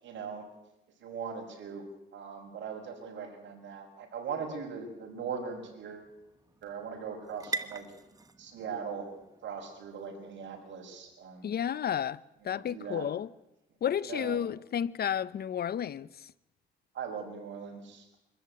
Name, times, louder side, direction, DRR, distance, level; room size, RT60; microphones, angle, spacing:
voice 1, 0.0-0.5 1.0-1.8 2.1-6.1 6.6-7.9 8.4-9.1 9.4-11.5 12.5-13.1 14.1-14.4 16.9-18.2, right 6 dB, 65° right, 6.4 m, -40 dB
sound 1, 4.0-11.8, right 3 dB, 20° right, 1.4 m, -46 dB
voice 2, 11.4-12.2 12.4-13.3 13.8-16.1, left 9 dB, 50° left, 0.7 m, -31 dB
25.0 x 14.0 x 9.5 m
cardioid pair, 90°, 20 cm